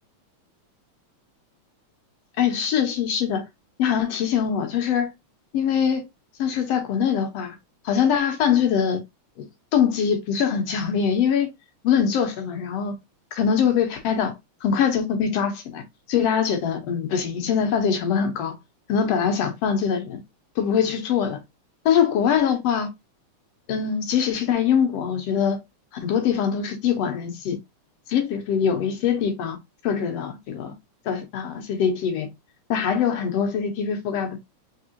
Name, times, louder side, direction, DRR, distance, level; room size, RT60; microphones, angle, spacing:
voice 1, 2.4-3.5 3.8-5.1 5.5-6.0 6.4-7.6 7.9-9.0 9.7-11.5 11.8-12.9 13.3-14.4 14.6-15.8 16.1-18.6 18.9-20.2 20.6-21.4 21.9-22.9 23.7-25.6 26.0-27.6 28.1-29.6 29.8-30.7 31.1-32.3 32.7-34.4, left 7 dB, 65° left, 1.9 m, -23 dB
4.7 x 3.5 x 2.8 m
omnidirectional pair, 3.3 m